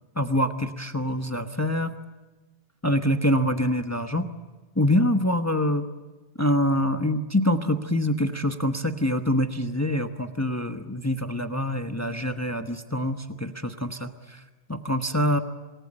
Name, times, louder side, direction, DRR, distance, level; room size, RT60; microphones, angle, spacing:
voice 1, 0.2-1.9 2.8-4.3 4.8-5.9 6.4-14.4 14.7-15.4, left 1 dB, 15° left, 7 dB, 1.0 m, -25 dB
27.5 x 19.5 x 8.8 m, 1.2 s
omnidirectional pair, 1.1 m